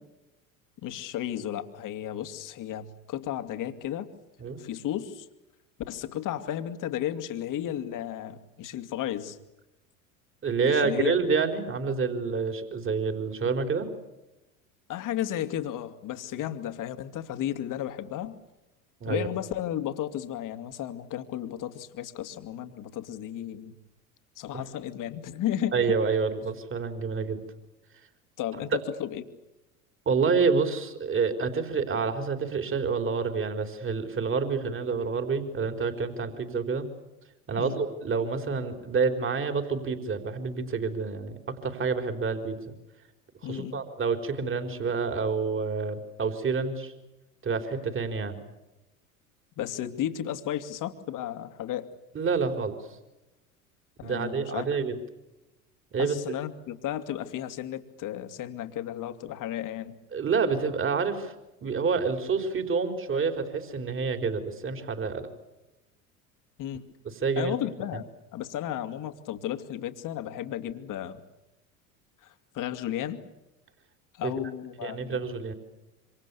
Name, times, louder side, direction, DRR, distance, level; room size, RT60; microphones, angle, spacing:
voice 1, 0.8-4.1 4.6-5.3 5.9-9.4 10.6-11.2 14.9-18.4 19.1-23.8 24.4-25.7 28.4-29.2 37.6-37.8 43.4-43.8 49.6-51.9 54.0-54.6 56.0-60.0 66.6-66.8 67.4-71.2 72.2-73.2 74.1-75.3, left 11 dB, 45° left, 7 dB, 2.7 m, -34 dB
voice 2, 10.4-13.9 19.0-19.3 24.5-24.6 25.7-27.4 30.1-36.9 37.5-42.7 43.4-46.9 47.4-48.4 52.1-52.7 54.0-55.0 55.9-56.4 60.1-61.3 61.6-65.3 67.1-67.5 74.2-74.3 74.8-75.5, right 5 dB, 30° right, 7 dB, 4.2 m, -28 dB
27.0 x 26.5 x 7.1 m, 0.97 s
hypercardioid pair, 75°, 43 cm